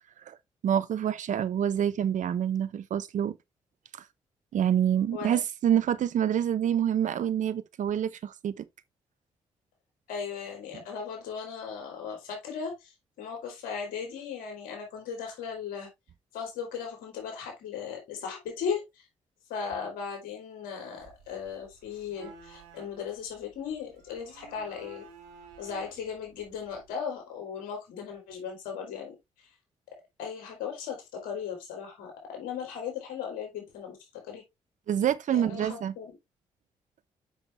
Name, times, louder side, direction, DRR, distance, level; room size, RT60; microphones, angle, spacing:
voice 1, 0.6-3.4 3.9-4.0 4.5-8.6 34.9-35.9, right 9 dB, 65° right, 0.9 m, -27 dB
voice 2, 10.1-15.9 16.3-19.1 19.5-25.1 25.6-29.5 30.2-34.4 35.3-36.2, left 6 dB, 80° left, 3.9 m, -37 dB
sound 1, 21.0-27.0, right 5 dB, 90° right, 1.5 m, -53 dB
7.4 x 6.0 x 3.4 m
hypercardioid pair, 45°, 14 cm